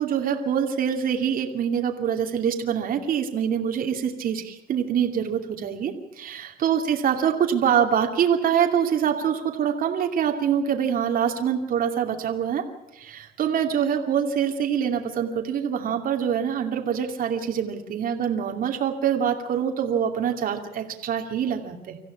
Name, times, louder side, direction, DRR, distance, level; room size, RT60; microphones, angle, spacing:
voice 1, 0.0-12.6 12.9-22.0, right 8 dB, 55° right, 3 dB, 2.7 m, -25 dB
25.5 x 15.0 x 8.5 m, 0.97 s
cardioid pair, 110°, 17 cm